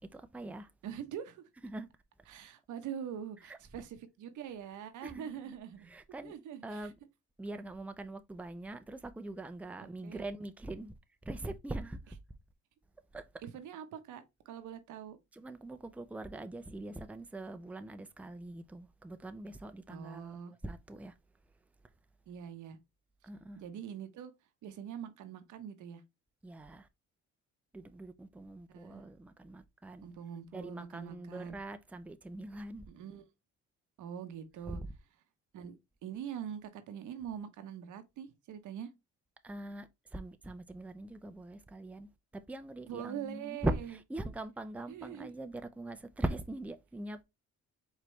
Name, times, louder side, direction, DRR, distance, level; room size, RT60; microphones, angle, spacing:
voice 1, 0.1-0.7 1.6-1.9 3.4-3.6 5.0-6.3 6.6-6.9 7.4-10.9 11.2-12.2 13.1-13.3 15.3-21.2 23.2-23.6 26.4-26.9 27.7-30.1 30.5-32.9 34.7-34.9 39.4-47.2, right 2 dB, 5° right, 0.5 m, -42 dB
voice 2, 0.8-1.4 2.3-5.9 6.2-6.9 9.8-10.2 13.4-15.2 19.9-20.5 22.3-22.8 23.6-24.3 24.6-26.0 28.7-29.0 30.0-31.6 32.9-33.2 34.0-34.8 35.5-35.8 36.0-38.9 42.9-43.7 44.9-45.3, right 8 dB, 80° right, 1.0 m, -43 dB
4.9 x 3.3 x 3.1 m
cardioid pair, 90°, 30 cm